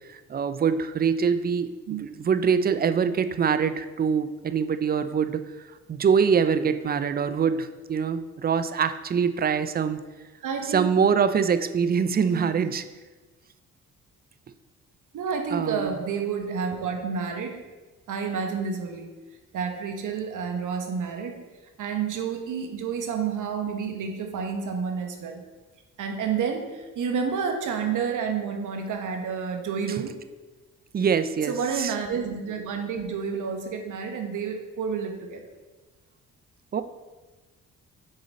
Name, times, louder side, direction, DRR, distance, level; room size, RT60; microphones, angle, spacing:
voice 1, 0.1-1.7 2.0-5.4 5.9-10.0 10.7-12.8 15.5-15.9 30.9-31.9 36.7-36.8, right 6 dB, 30° right, 11 dB, 0.4 m, -24 dB
voice 2, 10.4-10.9 12.1-12.7 15.1-17.6 18.1-19.1 19.5-21.4 21.8-25.4 26.0-30.2 31.5-35.4, right 6 dB, 65° right, 4 dB, 1.0 m, -30 dB
6.3 x 3.9 x 4.1 m, 1.2 s
supercardioid pair, 60°, 32 cm